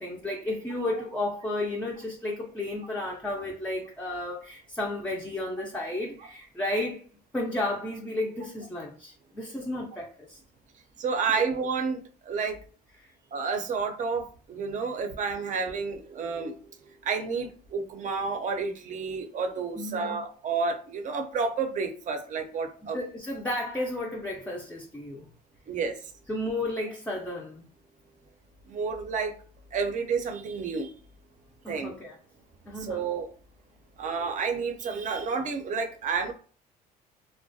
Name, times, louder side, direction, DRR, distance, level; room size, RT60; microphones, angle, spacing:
voice 1, 0.0-7.1 7.3-10.4 11.3-11.5 13.0-13.1 19.8-20.2 22.9-25.2 26.3-27.6 31.6-32.2 32.7-33.1, left 1 dB, 10° left, 0.4 m, -33 dB
voice 2, 11.0-12.0 12.3-12.6 13.3-16.5 17.0-23.0 25.7-26.0 28.7-29.3 29.7-30.9 31.7-31.9 32.8-33.3 34.0-36.3, right 5 dB, 50° right, 0.5 m, -30 dB
2.3 x 2.1 x 2.6 m
cardioid pair, 110°, 17 cm